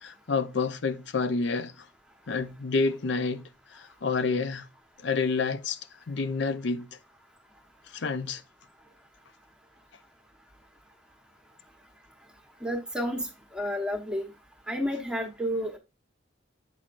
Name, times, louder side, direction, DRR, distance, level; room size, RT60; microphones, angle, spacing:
voice 1, 0.0-1.9 2.3-3.4 3.7-4.7 5.0-5.8 6.1-6.9 7.9-8.4, left 4 dB, 60° left, 0.6 m, -29 dB
voice 2, 12.6-13.2 13.5-14.2 14.7-15.8, equal, 5° right, 1.1 m, -30 dB
7.6 x 5.8 x 2.5 m
head